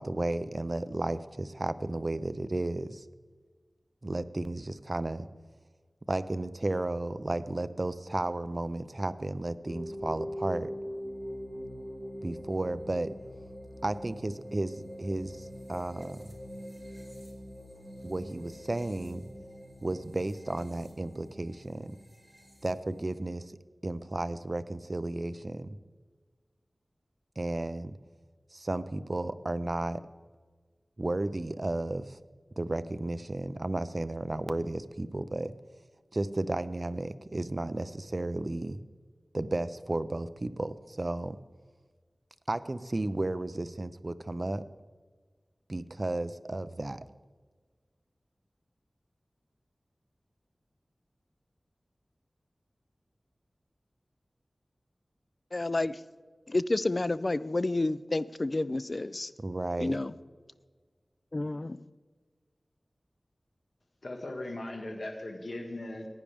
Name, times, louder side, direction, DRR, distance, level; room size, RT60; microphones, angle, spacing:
voice 1, 0.0-3.0 4.0-5.3 6.1-10.7 12.2-13.1 13.8-16.3 18.0-19.2 19.8-21.9 22.6-23.6 23.8-25.8 27.4-28.0 28.5-30.0 31.0-32.2 32.6-35.5 36.1-38.8 39.3-41.4 42.5-44.6 45.7-47.0 59.4-60.0, right 2 dB, 40° right, 0.5 m, -33 dB
sound 1, 9.6-23.2, equal, 10° right, 3.2 m, -43 dB
voice 2, 55.5-56.0 56.5-59.3 59.8-60.1 61.3-61.8, left 2 dB, 45° left, 0.4 m, -30 dB
voice 3, 64.0-66.1, left 1 dB, 65° left, 1.7 m, -38 dB
15.5 x 9.9 x 3.5 m
wide cardioid pair, 70°, 0 cm